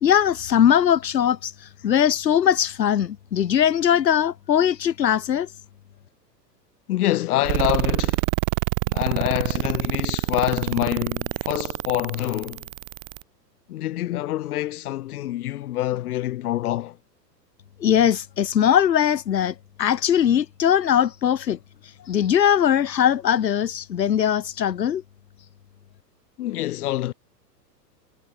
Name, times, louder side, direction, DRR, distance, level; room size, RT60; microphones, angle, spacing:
voice 1, 0.0-5.5 17.8-21.6 22.0-25.0, left 9 dB, 85° left, 1.2 m, -20 dB
voice 2, 6.9-8.2 8.9-12.7 13.7-17.0 26.4-27.1, left 14 dB, 60° left, 3.3 m, -26 dB
sound 1, 7.5-13.2, right 25 dB, 50° right, 2.4 m, -26 dB
hypercardioid pair, 110°, 49 cm